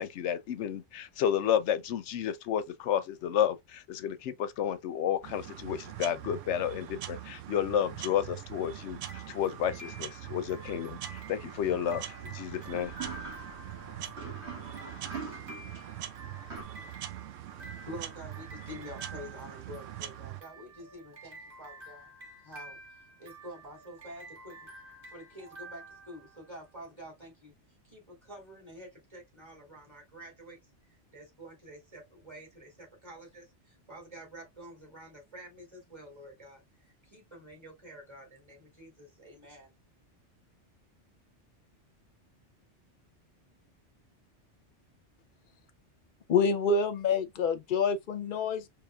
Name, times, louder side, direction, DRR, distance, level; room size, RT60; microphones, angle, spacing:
voice 1, 0.0-12.9, left 9 dB, 75° left, 0.9 m, -31 dB
sound 1, 5.2-20.4, right 12 dB, 90° right, 1.0 m, -43 dB
sound 2, 9.0-26.7, right 2 dB, 50° right, 1.6 m, -50 dB
sound 3, 11.2-16.6, right 4 dB, 65° right, 2.1 m, -45 dB
voice 2, 17.5-22.1 22.4-22.8 23.2-24.7 25.0-27.5 27.8-30.6 30.9-39.7, equal, 25° right, 2.3 m, -48 dB
voice 3, 46.3-48.7, left 4 dB, 50° left, 0.7 m, -27 dB
4.9 x 3.3 x 2.2 m
omnidirectional pair, 1.2 m